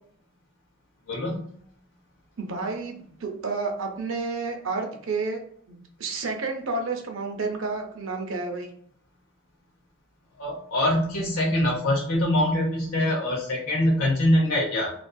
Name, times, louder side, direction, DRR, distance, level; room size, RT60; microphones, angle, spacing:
voice 1, 1.1-1.4 10.4-14.9, left 1 dB, 90° left, -3 dB, 0.7 m, -24 dB
voice 2, 2.4-5.4 5.7-8.7, right 3 dB, 65° right, 3 dB, 0.5 m, -30 dB
2.5 x 2.3 x 2.2 m, 0.62 s
head